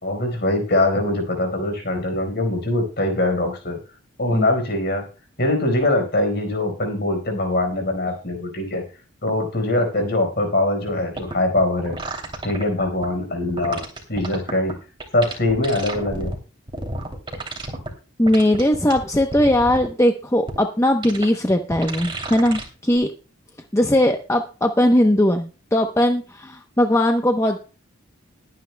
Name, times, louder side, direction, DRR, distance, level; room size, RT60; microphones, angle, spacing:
voice 1, 0.0-3.8 4.2-5.0 5.4-8.8 9.2-12.0 12.4-13.8 14.1-14.7 15.1-16.3, left 1 dB, 50° left, 4 dB, 4.5 m, -22 dB
sound 1, 10.9-11.0 11.2-13.1 13.6-14.7 15.0-16.4 16.7-17.9 18.3-19.9 20.5-20.6 21.0-21.3 21.7-22.6 23.0-23.1, right 2 dB, 25° right, 2.8 m, -31 dB
voice 2, 18.2-23.1 23.7-27.6, left 1 dB, 15° left, 4 dB, 0.8 m, -19 dB
21.0 x 9.4 x 2.2 m, 0.34 s
head